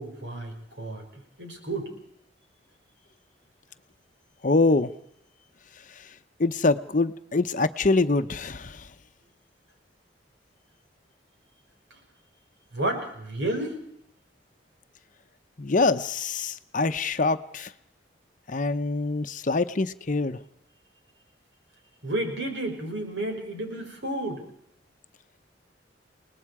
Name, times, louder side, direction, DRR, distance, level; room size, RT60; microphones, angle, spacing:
voice 1, 0.0-1.9 12.7-13.8 22.0-24.4, right 1 dB, 80° right, 3 dB, 5.9 m, -31 dB
voice 2, 4.4-4.9 6.4-8.8 15.6-17.7 18.5-20.4, left 3 dB, 45° left, 10 dB, 0.8 m, -24 dB
29.5 x 19.5 x 4.8 m, 0.72 s
head